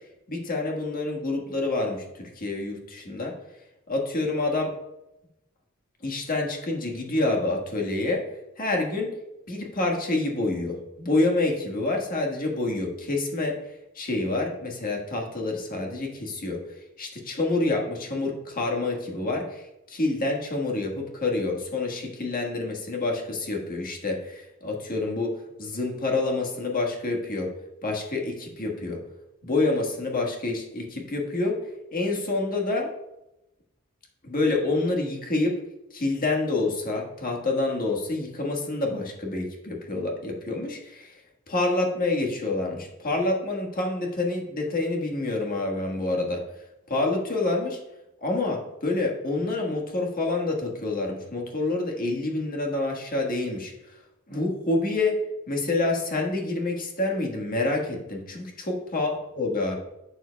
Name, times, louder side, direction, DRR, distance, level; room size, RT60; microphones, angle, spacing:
voice 1, 0.3-3.3 3.9-4.7 6.0-8.2 8.6-9.1 9.5-13.6 13.9-16.6 17.0-25.3 25.6-27.5 27.8-29.0 29.4-31.5 31.9-32.9 34.2-35.5 35.9-41.2 41.5-46.4 46.9-47.8 48.2-53.7 54.3-55.2 55.5-59.8, left 2 dB, 40° left, 0 dB, 1.5 m, -27 dB
11.5 x 7.6 x 2.3 m, 0.92 s
head